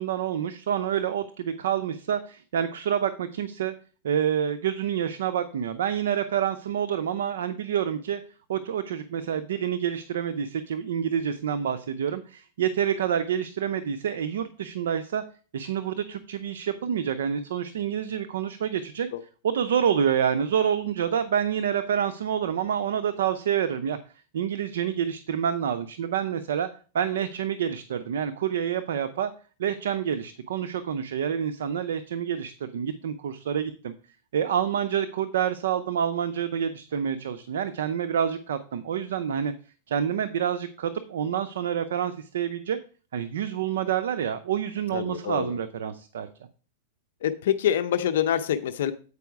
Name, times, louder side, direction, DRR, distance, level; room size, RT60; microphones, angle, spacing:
voice 1, 0.0-3.7 4.0-8.2 8.5-15.2 15.5-19.1 19.4-24.0 24.3-26.7 26.9-29.3 29.6-33.9 34.3-39.5 39.9-42.8 43.1-46.3, right 8 dB, 85° right, 10 dB, 0.5 m, -27 dB
voice 2, 44.9-45.5 47.2-48.9, left 10 dB, 75° left, 9 dB, 0.5 m, -26 dB
8.3 x 4.8 x 4.6 m, 0.39 s
supercardioid pair, 135°, 0 cm